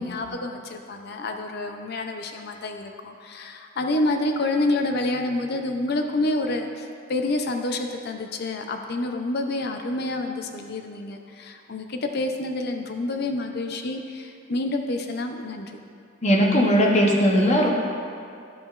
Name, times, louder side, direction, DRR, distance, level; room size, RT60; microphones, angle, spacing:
voice 1, 0.0-15.8, left 2 dB, 50° left, 5 dB, 0.5 m, -28 dB
voice 2, 16.2-17.7, equal, 35° left, -1 dB, 0.8 m, -18 dB
12.5 x 5.0 x 2.4 m, 2.4 s
head